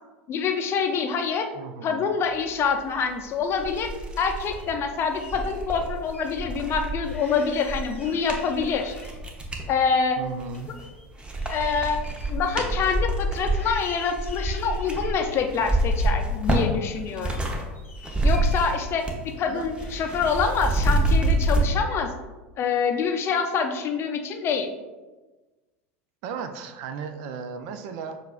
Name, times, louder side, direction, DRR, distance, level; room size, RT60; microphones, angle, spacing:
voice 1, 0.3-1.5 1.8-3.9 4.2-8.9 9.7-10.2 11.5-12.0 12.3-17.4 18.2-19.0 19.4-22.1 22.6-24.7, left 5 dB, 40° left, 5 dB, 0.5 m, -26 dB
voice 2, 1.5-2.1 10.2-10.7 19.5-19.7 26.2-28.2, right 5 dB, 55° right, 8 dB, 0.4 m, -35 dB
sound 1, 3.0-3.1 3.5-9.7 10.3-10.9 11.2-17.6 17.9-19.3 19.5-21.7, right 1 dB, 15° right, 0.7 m, -27 dB
sound 2, 3.7-4.7 5.1-6.3 6.7-6.8 7.1-9.5 9.8-13.2 13.5-15.2 15.7-16.6 16.9-19.4 19.8-20.4, left 3 dB, 85° left, 0.7 m, -48 dB
6.4 x 2.5 x 2.3 m, 1.2 s
hypercardioid pair, 80°, 7 cm